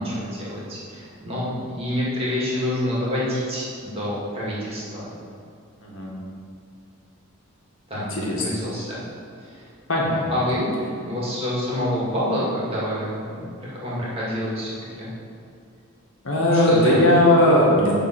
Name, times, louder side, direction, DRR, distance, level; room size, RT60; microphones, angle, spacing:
voice 1, 0.0-5.1 7.9-9.0 10.3-10.7 11.0-14.7 15.0-15.1 16.5-17.0, left 1 dB, 25° right, -7 dB, 2.1 m, -27 dB
voice 2, 7.9-8.6 9.9-10.2 16.2-17.9, left 1 dB, 65° left, -4 dB, 1.7 m, -18 dB
9.9 x 3.8 x 5.9 m, 2.5 s
head